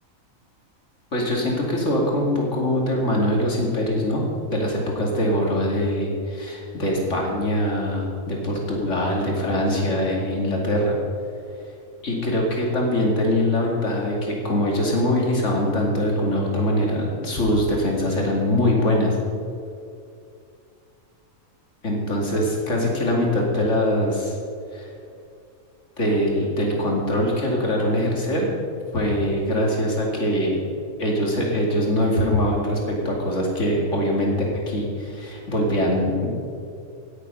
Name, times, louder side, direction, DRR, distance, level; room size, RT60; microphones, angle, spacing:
voice 1, 1.1-4.2 4.5-11.0 12.0-19.2 21.8-24.4 24.7-24.9 26.0-28.5 28.9-30.6 31.0-34.3 34.7-36.3, left 1 dB, 60° left, -1 dB, 2.8 m, -23 dB
17.5 x 8.2 x 5.5 m, 2.4 s
omnidirectional pair, 1.4 m